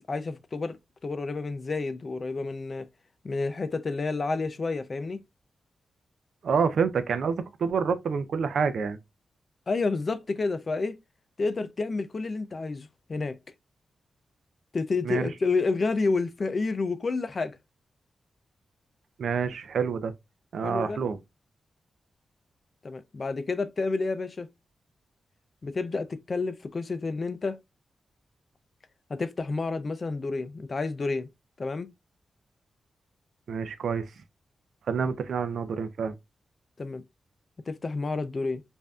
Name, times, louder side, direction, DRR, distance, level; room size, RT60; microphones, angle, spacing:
voice 1, 0.1-0.8 1.0-2.9 3.2-5.2 9.7-11.0 11.4-13.4 14.7-17.6 20.6-21.0 22.8-24.5 25.6-27.6 29.1-31.3 31.6-31.9 36.8-37.0 37.7-38.6, left 3 dB, 35° left, 0.4 m, -29 dB
voice 2, 6.4-9.0 15.0-15.3 19.2-20.1 20.5-21.2 33.5-34.1 34.9-36.2, right 6 dB, 70° right, 0.5 m, -27 dB
5.4 x 2.6 x 2.3 m
wide cardioid pair, 155°, 0 cm